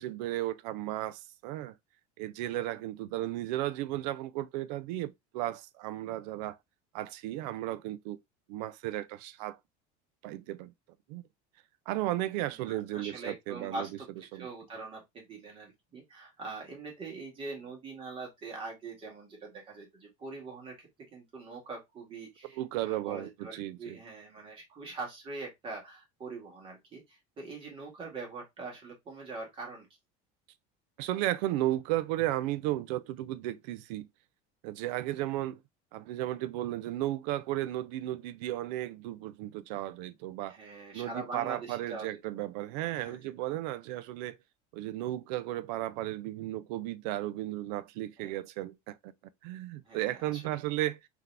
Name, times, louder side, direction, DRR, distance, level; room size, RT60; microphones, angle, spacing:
voice 1, 0.0-1.7 2.2-6.6 6.9-8.2 8.5-9.6 10.2-10.7 11.1-11.2 11.9-13.9 14.3-14.5 22.5-24.0 31.0-34.1 34.6-35.6 35.9-40.6 40.9-44.4 44.7-49.1 49.4-51.0, right 15 dB, 80° right, 0.5 m, -34 dB
voice 2, 12.5-14.1 14.3-29.9 40.5-42.2 43.0-43.3 48.2-48.4 49.8-50.6, right 3 dB, 25° right, 1.8 m, -43 dB
3.9 x 3.0 x 3.3 m
cardioid pair, 165°, 21 cm